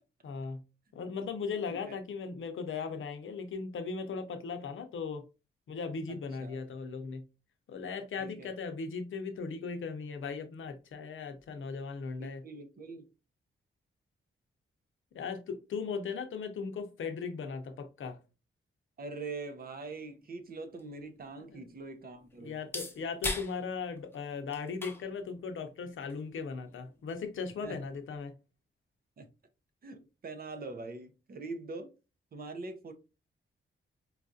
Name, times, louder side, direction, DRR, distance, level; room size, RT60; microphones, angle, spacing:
voice 1, 0.2-0.6 0.9-5.2 5.7-7.2 7.7-12.4 15.1-18.2 21.5-21.6 22.4-28.3, left 5 dB, 70° left, 0.6 m, -38 dB
voice 2, 6.1-6.6 8.2-8.5 12.2-13.0 19.0-22.5 27.6-27.8 29.2-29.3 29.8-31.9 32.3-32.9, right 3 dB, 45° right, 0.6 m, -43 dB
sound 1, 20.2-28.2, left 2 dB, 10° left, 0.6 m, -44 dB
4.5 x 2.4 x 2.6 m
wide cardioid pair, 135°, 21 cm